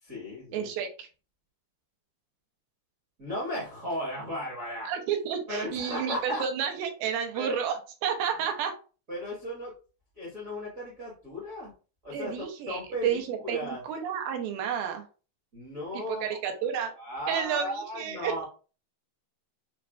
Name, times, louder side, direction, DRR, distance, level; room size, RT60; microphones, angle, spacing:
voice 1, 0.0-0.7 3.2-4.9 5.5-6.4 7.3-7.6 9.1-9.7 10.1-11.7 12.0-13.8 15.5-16.2 17.0-18.4, left 1 dB, 65° right, -7 dB, 0.8 m, -36 dB
voice 2, 0.5-1.1 4.9-8.7 12.1-15.1 15.9-16.9 17.3-18.4, right 8 dB, 90° right, 4 dB, 2.4 m, -31 dB
5.8 x 2.3 x 2.3 m, 0.35 s
omnidirectional pair, 4.1 m